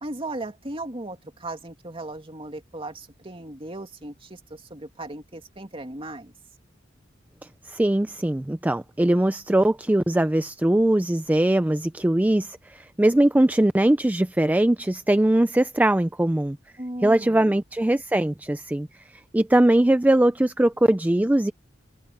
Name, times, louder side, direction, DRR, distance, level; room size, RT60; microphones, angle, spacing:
voice 1, 0.0-6.3 16.8-17.6, right 2 dB, 30° right, 2.4 m, -36 dB
voice 2, 7.7-16.6 17.0-21.5, right 1 dB, 10° right, 0.4 m, -21 dB
head